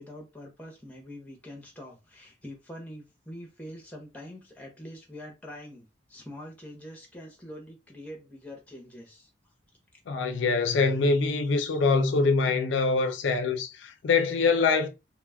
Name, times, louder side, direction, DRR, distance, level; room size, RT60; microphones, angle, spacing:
voice 1, 0.0-9.3, equal, 10° left, 0.7 m, -44 dB
voice 2, 10.1-14.9, left 4 dB, 75° left, 0.4 m, -24 dB
2.2 x 2.0 x 3.3 m
head